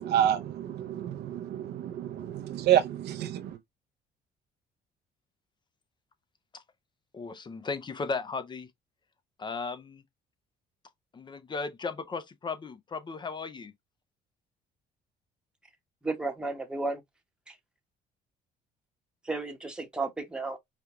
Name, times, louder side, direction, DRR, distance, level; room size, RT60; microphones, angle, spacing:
voice 1, 0.0-3.5, right 11 dB, 65° right, 0.5 m, -28 dB
voice 2, 7.1-8.7 9.4-10.0 11.1-13.7, left 4 dB, 25° left, 0.5 m, -36 dB
voice 3, 16.0-17.0 17.5-17.6 19.2-20.6, right 3 dB, 5° right, 0.9 m, -33 dB
5.0 x 2.2 x 2.9 m
cardioid pair, 130°, 18 cm